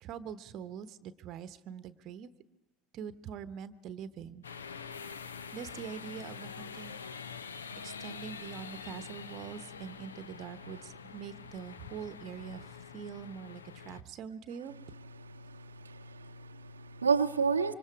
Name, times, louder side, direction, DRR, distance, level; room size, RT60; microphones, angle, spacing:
voice 1, 0.0-2.3 2.9-4.4 5.5-6.9 7.8-14.7, right 8 dB, 45° right, 14 dB, 0.9 m, -44 dB
sound 1, 4.4-14.0, left 6 dB, 75° left, 0.7 m, -45 dB
voice 2, 15.2-17.7, right 5 dB, 80° right, 5 dB, 0.7 m, -31 dB
26.0 x 25.0 x 4.8 m, 1.0 s
figure-of-eight pair, 70°, 0 cm